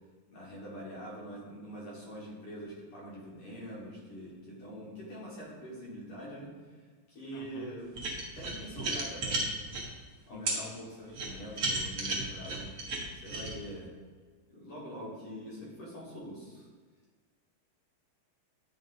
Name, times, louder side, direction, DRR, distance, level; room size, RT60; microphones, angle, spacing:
voice 1, 0.3-6.8 7.1-7.9 8.3-9.5 10.3-12.7 13.2-13.9 14.5-16.7, equal, 50° left, -5 dB, 2.4 m, -44 dB
voice 2, 7.3-7.7 8.5-8.6 10.3-10.8, left 9 dB, 80° left, 4 dB, 2.0 m, -49 dB
sound 1, 7.9-9.8 10.5-10.6 11.1-13.5, right 3 dB, 70° right, 0.9 m, -33 dB
8.8 x 5.1 x 2.6 m, 1.4 s
omnidirectional pair, 3.3 m